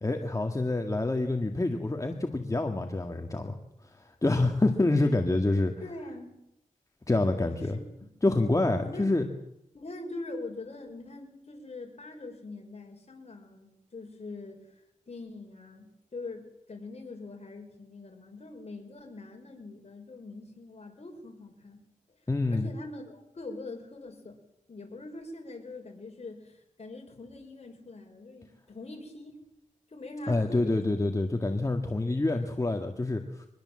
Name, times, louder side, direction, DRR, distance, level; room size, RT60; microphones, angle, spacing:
voice 1, 0.0-3.6 3.8-5.7 7.1-7.8 8.2-9.3 22.3-22.7 30.3-33.5, left 2 dB, 25° left, 4 dB, 1.8 m, -27 dB
voice 2, 5.8-6.4 7.6-7.8 8.8-9.1 9.7-21.8 22.5-24.4 24.7-29.4 29.9-30.9, left 2 dB, 50° left, 3 dB, 5.7 m, -43 dB
24.0 x 21.0 x 7.7 m, 0.81 s
wide cardioid pair, 100°, 14 cm